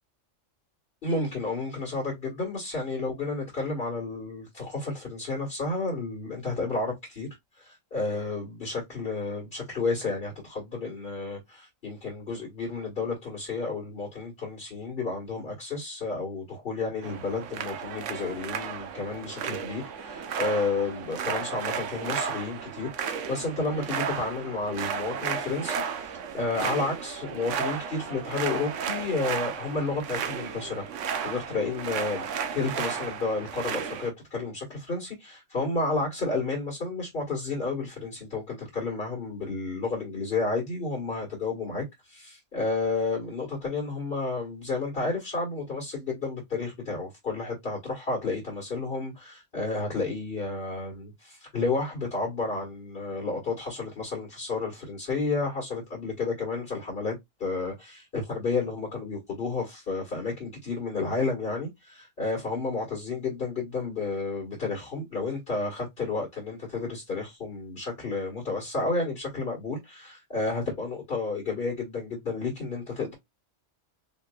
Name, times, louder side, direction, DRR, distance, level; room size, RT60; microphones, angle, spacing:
voice 1, 1.0-7.3 7.6-32.2 32.5-73.1, left 3 dB, 45° left, 1.6 m, -31 dB
sound 1, 17.0-34.1, right 7 dB, 70° right, 1.0 m, -34 dB
4.1 x 2.8 x 2.2 m
omnidirectional pair, 1.3 m